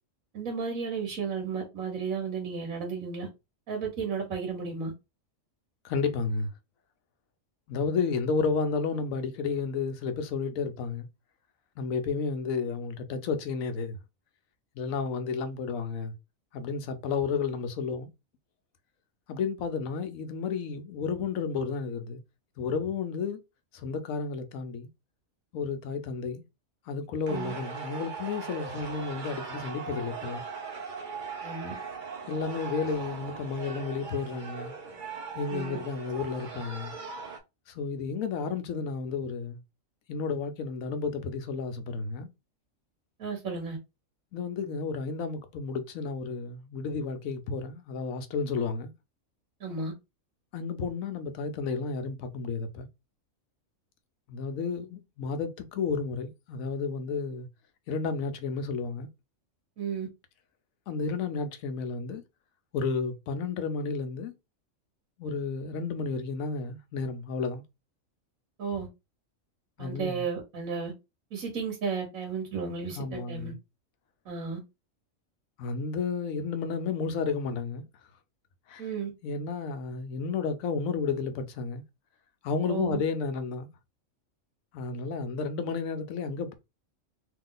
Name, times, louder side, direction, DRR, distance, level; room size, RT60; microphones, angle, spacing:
voice 1, 0.3-3.3 3.7-4.9 27.3-27.5 31.4-31.8 35.5-35.8 43.2-43.8 49.6-49.9 59.8-60.1 68.6-68.9 69.8-70.9 71.3-73.5 74.2-74.6 78.8-79.1 82.7-83.0, right 5 dB, 85° right, 1.5 m, -33 dB
voice 2, 5.8-6.5 7.7-11.1 11.8-14.0 14.8-16.1 16.5-18.1 19.3-22.2 22.6-23.4 23.7-24.9 25.5-26.4 26.9-30.4 32.3-34.7 35.3-36.9 37.7-39.6 40.1-42.3 44.3-48.9 50.5-52.9 54.3-57.5 57.9-59.1 60.9-62.2 62.7-64.3 65.2-67.6 69.8-70.3 73.0-73.6 75.6-77.9 78.7-78.9 79.2-81.8 82.4-83.7 84.7-86.5, left 5 dB, 80° left, 1.1 m, -32 dB
sound 1, 27.3-37.4, right 5 dB, 45° right, 0.9 m, -39 dB
3.0 x 2.8 x 3.8 m
omnidirectional pair, 1.4 m